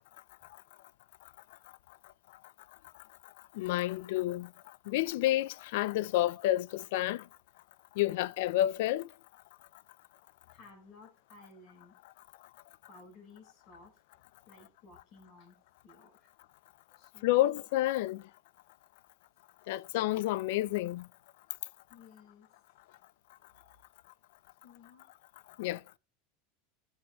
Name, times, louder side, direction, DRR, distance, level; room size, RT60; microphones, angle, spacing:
voice 1, 3.6-4.5 4.9-7.2 8.0-9.1 17.2-18.2 19.7-21.0 25.6-25.8, left 15 dB, 70° left, 0.3 m, -29 dB
voice 2, 10.5-11.9 12.9-14.0 14.4-15.5 15.8-16.3 16.9-17.7 19.7-19.9 21.9-22.5 24.6-25.1, left 3 dB, 40° left, 4.5 m, -56 dB
16.5 x 6.3 x 2.3 m
supercardioid pair, 135°, 0 cm